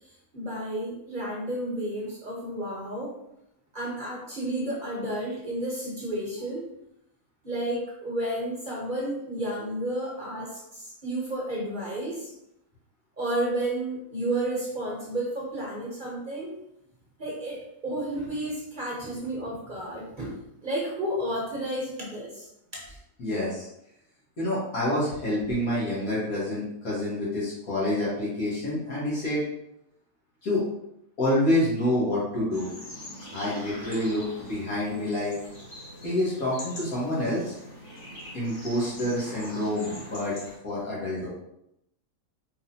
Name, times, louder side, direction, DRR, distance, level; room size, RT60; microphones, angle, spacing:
voice 1, 0.3-3.1 3.7-6.7 7.4-12.3 13.2-16.5 17.2-22.5 22.7-22.8, right 1 dB, 35° right, -4 dB, 1.1 m, -32 dB
voice 2, 23.2-23.7 24.4-29.4 30.4-30.6 31.2-32.7 33.3-35.4 36.0-37.5 38.3-40.3 40.6-41.3, left 1 dB, 80° left, -8 dB, 1.9 m, -27 dB
sound 1, 32.5-40.5, equal, 55° left, 1.6 m, -43 dB
4.9 x 3.6 x 2.8 m, 0.80 s
omnidirectional pair, 1.5 m